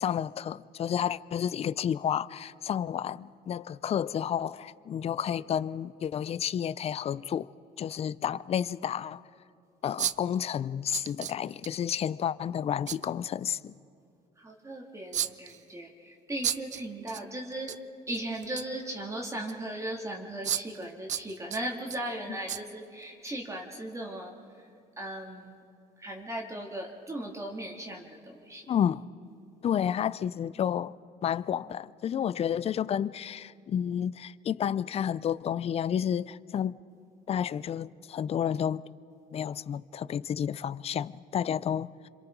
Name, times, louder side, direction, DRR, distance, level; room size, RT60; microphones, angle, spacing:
voice 1, 0.0-7.5 7.8-9.2 9.8-13.7 28.7-29.1 29.6-30.9 31.2-36.8 37.3-38.8 39.3-42.1, left 9 dB, 35° left, 0.4 m, -31 dB
sound 1, 6.1-6.2 8.0-8.1 8.7-8.8 10.0-10.4 10.9-11.7 12.9-13.1 15.1-15.6 16.4-17.2 17.5-17.8 18.1-18.8 19.5-19.6 20.4-20.8 21.1-22.0 22.5-22.6 23.0-23.1, right 10 dB, 45° right, 0.5 m, -33 dB
voice 2, 14.4-17.7 18.1-24.3 24.6-24.7 25.0-25.6 26.0-28.7, right 1 dB, 15° right, 2.4 m, -37 dB
27.0 x 26.0 x 4.6 m
cardioid pair, 110°, 17 cm